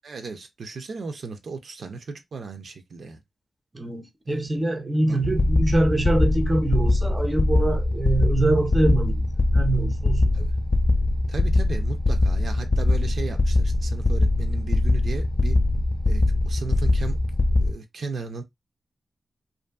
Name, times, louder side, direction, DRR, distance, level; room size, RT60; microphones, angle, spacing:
voice 1, 0.0-3.2 4.3-4.4 5.1-5.2 10.3-10.5 11.3-15.6 16.1-17.2 17.6-18.4, right 4 dB, 70° right, 0.5 m, -36 dB
voice 2, 3.7-10.3, right 2 dB, 20° right, 0.5 m, -24 dB
sound 1, 5.2-17.7, left 2 dB, 35° left, 0.3 m, -22 dB
2.5 x 2.5 x 2.2 m
wide cardioid pair, 105°, 0 cm